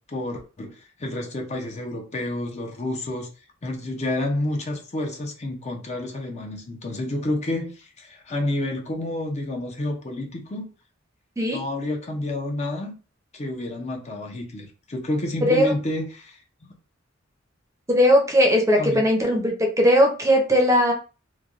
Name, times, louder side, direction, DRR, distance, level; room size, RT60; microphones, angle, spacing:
voice 1, 0.1-3.3 3.6-10.7 11.5-12.9 13.3-16.4 18.8-19.1, left 1 dB, 35° left, 2 dB, 0.6 m, -29 dB
voice 2, 15.4-15.7 17.9-20.9, equal, 15° right, 1 dB, 0.6 m, -18 dB
3.2 x 2.2 x 2.4 m, 0.34 s
head